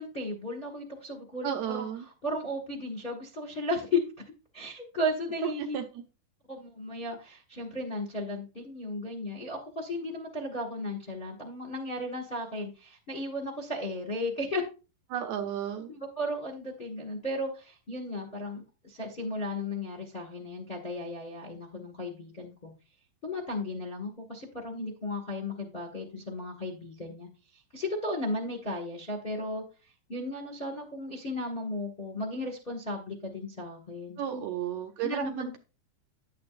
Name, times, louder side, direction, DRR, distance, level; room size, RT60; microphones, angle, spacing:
voice 1, 0.0-4.0 4.5-5.8 6.5-14.6 15.9-22.7 23.2-27.3 27.7-29.6 30.1-34.4 35.0-35.6, left 1 dB, 25° left, 1 dB, 1.2 m, -35 dB
voice 2, 1.4-2.1 5.6-5.8 15.1-15.9 34.2-35.6, right 10 dB, 70° right, 4 dB, 2.0 m, -33 dB
10.5 x 8.6 x 2.5 m, 0.32 s
omnidirectional pair, 3.7 m